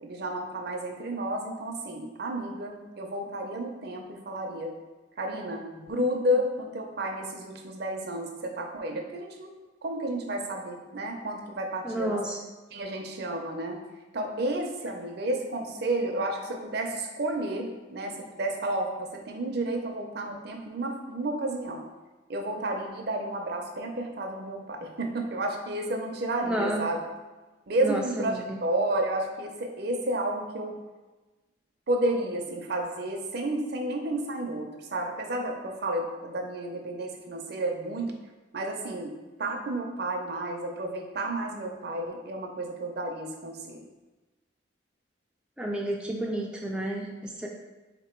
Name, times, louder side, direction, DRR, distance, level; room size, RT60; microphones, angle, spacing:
voice 1, 0.0-4.7 5.2-9.5 9.8-12.2 12.7-13.8 14.1-21.8 22.3-27.0 27.7-30.8 31.9-38.1 38.5-39.1 39.4-43.8, right 1 dB, 55° right, 3 dB, 0.6 m, -31 dB
voice 2, 11.8-12.4 26.4-26.8 27.8-28.6 45.6-47.5, right 1 dB, 5° right, -2 dB, 0.3 m, -31 dB
3.8 x 2.9 x 4.4 m, 1.2 s
head